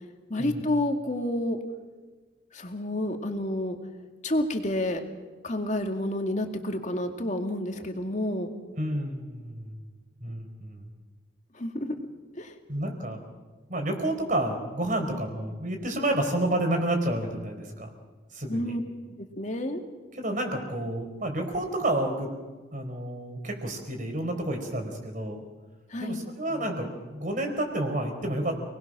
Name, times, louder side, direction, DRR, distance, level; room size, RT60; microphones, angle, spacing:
voice 1, 0.3-1.6 2.5-3.8 4.2-5.0 5.4-8.5 11.5-12.1 12.3-12.5 18.5-18.8 19.4-19.8 25.9-26.3, left 1 dB, 40° left, 5 dB, 2.3 m, -29 dB
voice 2, 8.8-10.9 12.7-13.2 13.7-17.9 18.3-18.8 20.1-22.3 22.7-25.4 26.0-28.6, right 1 dB, 45° right, 4 dB, 4.3 m, -30 dB
29.0 x 20.0 x 6.3 m, 1.3 s
head